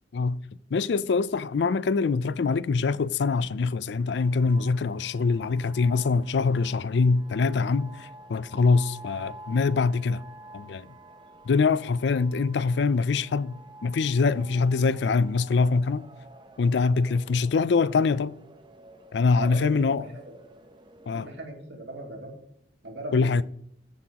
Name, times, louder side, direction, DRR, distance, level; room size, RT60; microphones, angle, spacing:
voice 1, 0.7-10.2 10.5-10.9 11.5-16.1 16.6-18.4 19.1-20.0 21.1-21.3 23.1-23.4, left 4 dB, 65° left, 0.4 m, -24 dB
sound 1, 4.2-21.3, right 1 dB, 25° right, 0.7 m, -50 dB
voice 2, 19.3-20.4 21.1-22.3 22.8-23.4, right 1 dB, 65° right, 2.6 m, -38 dB
14.0 x 7.8 x 2.9 m
head